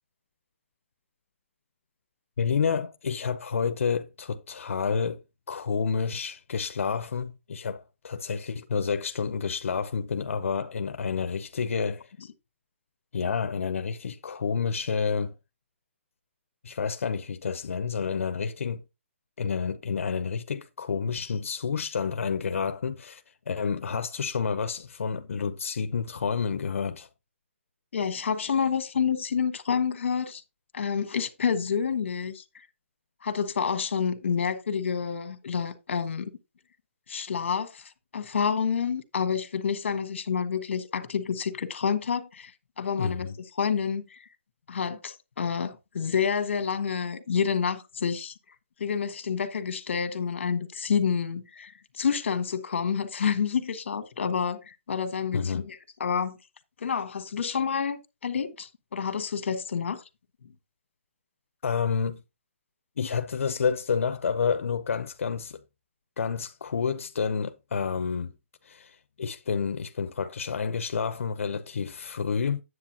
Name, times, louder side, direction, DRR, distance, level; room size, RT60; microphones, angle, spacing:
voice 1, 2.4-12.1 13.1-15.3 16.6-18.8 19.4-27.1 43.0-43.3 55.3-55.6 61.6-62.2 63.0-65.6 66.2-68.3 68.6-72.6, left 6 dB, 85° left, 0.7 m, -29 dB
voice 2, 27.9-30.4 30.7-32.4 33.2-36.3 37.1-42.5 42.8-43.3 43.5-44.2 44.7-48.3 48.8-56.4 56.8-60.0, left 6 dB, 60° left, 1.5 m, -28 dB
9.6 x 7.8 x 2.8 m
hypercardioid pair, 175°, 7 cm